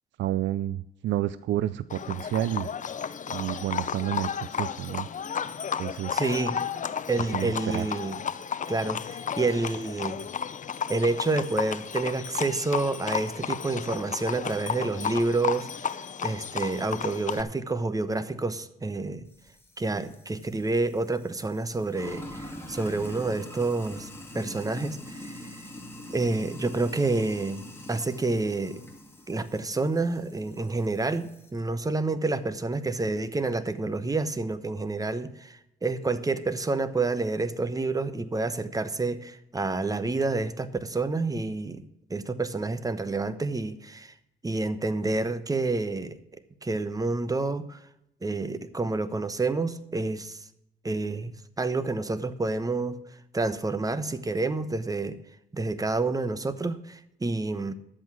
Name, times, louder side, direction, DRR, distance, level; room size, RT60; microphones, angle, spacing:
voice 1, 0.2-2.7 3.3-5.1 5.8-6.3 7.3-7.9, right 13 dB, 70° right, 0.4 m, -30 dB
Livestock farm animals working animals, 1.9-17.4, left 7 dB, 40° left, 0.7 m, -33 dB
voice 2, 6.1-6.6 7.1-8.2 8.7-10.3 10.9-16.0 16.2-19.3 19.8-24.1 24.3-25.7 26.1-28.8 29.3-44.1 44.4-46.2 46.6-47.8 48.2-50.4 50.8-53.0 53.3-55.2 55.5-57.7, right 3 dB, 20° right, 1.0 m, -29 dB
Sink (filling or washing), 19.3-31.6, left 1 dB, 10° left, 2.6 m, -44 dB
11.0 x 8.1 x 6.2 m
cardioid pair, 90°, 20 cm